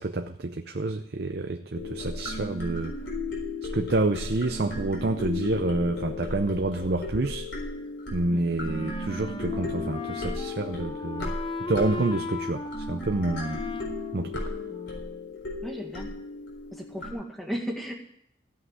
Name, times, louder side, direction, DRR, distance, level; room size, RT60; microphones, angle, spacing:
voice 1, 0.0-2.9 3.6-7.5 8.1-11.3 11.6-13.6 14.1-14.4, right 2 dB, 60° right, 6 dB, 0.7 m, -28 dB
sound 1, 1.7-17.1, left 2 dB, 65° left, 4.1 m, -35 dB
voice 2, 8.3-8.6 15.6-16.1 16.7-17.9, equal, ahead, 1 dB, 1.8 m, -35 dB
Wind instrument woodwind instrument, 8.6-15.2, left 2 dB, 25° left, 0.8 m, -37 dB
15.5 x 5.8 x 9.6 m, 0.72 s
head